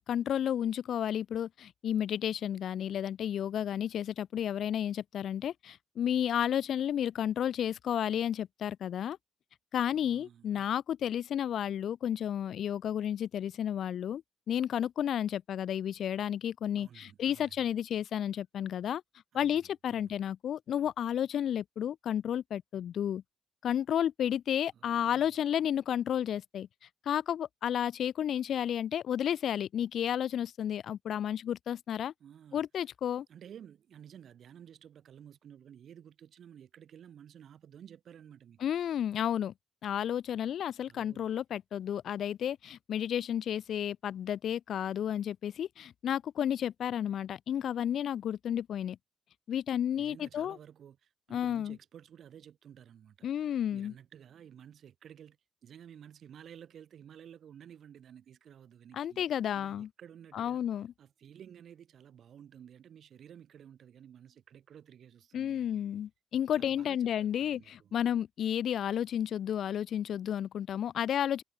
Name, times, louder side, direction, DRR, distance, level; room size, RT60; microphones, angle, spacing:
voice 1, 0.0-9.2 9.7-19.0 19.3-23.2 23.6-26.7 27.0-32.1 32.5-33.3 38.6-39.5 39.8-49.0 49.5-50.6 51.3-51.8 53.2-53.9 58.9-59.9 60.3-60.9 65.3-71.4, left 10 dB, 70° left, 3.0 m, -32 dB
voice 2, 10.0-10.6 16.8-17.4 19.9-20.0 24.8-25.2 32.2-32.6 33.3-38.6 40.9-41.2 50.0-51.0 51.3-53.1 53.7-55.4 55.6-59.2 59.5-60.6 61.0-65.8 66.6-67.0 67.4-67.6, right 9 dB, 70° right, 3.9 m, -53 dB
cardioid pair, 80°, 0 cm